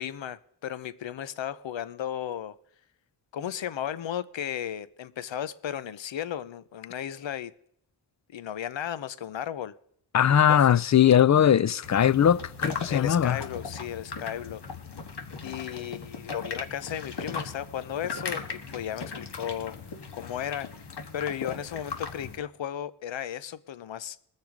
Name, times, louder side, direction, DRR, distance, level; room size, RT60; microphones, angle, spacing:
voice 1, 0.0-2.6 3.3-7.5 8.3-9.7 10.3-10.8 12.9-14.6 15.4-18.5 18.7-19.8 20.1-20.9 21.1-24.2, left 10 dB, 85° left, 0.7 m, -35 dB
voice 2, 10.1-13.4, left 9 dB, 40° left, 0.4 m, -20 dB
sound 1, 11.8-22.4, left 4 dB, 65° left, 1.5 m, -38 dB
20.0 x 6.7 x 5.0 m
cardioid pair, 40°, 44 cm